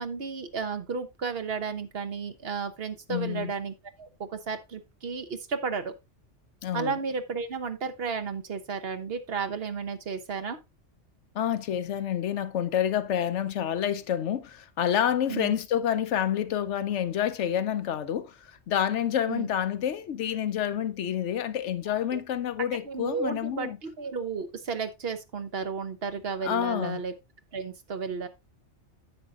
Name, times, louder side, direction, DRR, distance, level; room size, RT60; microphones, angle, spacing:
voice 1, 0.0-5.9 6.7-10.6 15.3-15.5 19.3-19.5 22.1-22.2 22.8-27.1 27.5-28.3, right 5 dB, 55° right, 1.1 m, -33 dB
voice 2, 3.1-3.5 6.6-6.9 11.3-18.4 18.7-23.8 26.4-27.0, left 10 dB, 75° left, 1.0 m, -28 dB
10.0 x 7.6 x 2.4 m
omnidirectional pair, 1.2 m